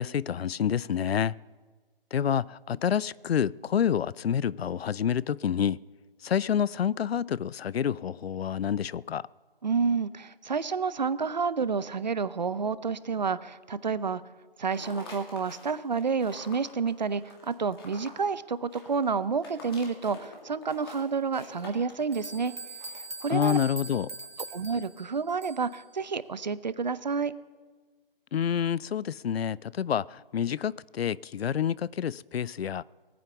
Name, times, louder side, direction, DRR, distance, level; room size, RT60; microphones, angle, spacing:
voice 1, 0.0-1.3 2.1-5.8 6.2-9.2 23.3-24.1 28.3-32.8, left 8 dB, 80° left, 0.5 m, -28 dB
voice 2, 9.6-14.2 14.6-22.5 23.0-23.6 24.5-27.3, right 5 dB, 45° right, 0.6 m, -29 dB
sound 1, 14.6-23.7, left 3 dB, 25° left, 2.4 m, -47 dB
sound 2, 21.7-21.8 22.1-25.8, right 3 dB, 75° right, 1.8 m, -42 dB
18.0 x 9.4 x 7.0 m
hypercardioid pair, 170°, 30 cm